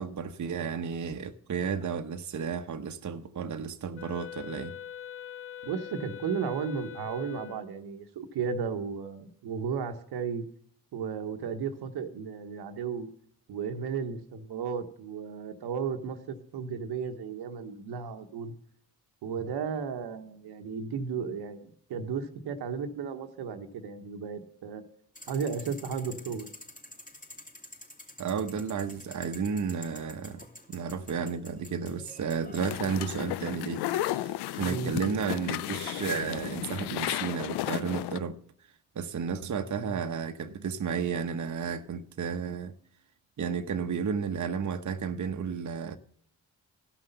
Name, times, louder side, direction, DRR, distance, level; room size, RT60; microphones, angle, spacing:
voice 1, 0.0-4.8 28.2-38.4 38.9-42.7 43.4-46.0, right 6 dB, 50° right, 0.9 m, -32 dB
Wind instrument woodwind instrument, 3.9-7.8, left 10 dB, 35° left, 0.4 m, -43 dB
voice 2, 5.6-10.4 10.9-13.1 13.5-18.5 19.2-24.8 25.3-26.5 34.6-34.9, right 6 dB, 80° right, 1.1 m, -34 dB
sound 1, 25.2-32.7, left 1 dB, 20° left, 2.7 m, -49 dB
sound 2, 32.6-38.2, left 14 dB, 90° left, 0.5 m, -33 dB
13.0 x 5.9 x 6.7 m
supercardioid pair, 55°, 38 cm